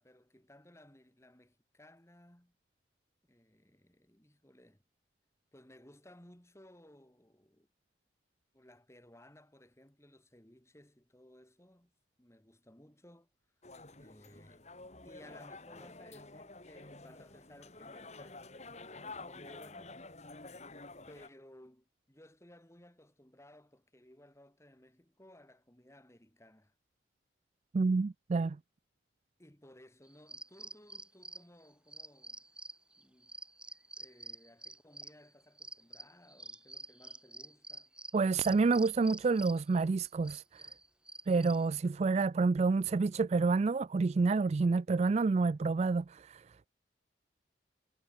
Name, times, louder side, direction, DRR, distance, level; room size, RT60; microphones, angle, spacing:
voice 1, 0.0-2.6 3.2-4.8 5.5-7.7 8.5-11.9 12.2-13.3 14.0-14.7 15.0-20.0 21.1-26.7 29.4-32.4 33.0-33.3 34.0-37.9, left 1 dB, 15° left, 2.4 m, -59 dB
sound 1, 13.6-21.3, left 3 dB, 35° left, 2.9 m, -50 dB
voice 2, 27.7-28.6 38.1-40.7 41.3-46.7, right 4 dB, 35° right, 0.3 m, -29 dB
sound 2, 30.1-41.8, right 1 dB, 5° right, 0.8 m, -48 dB
head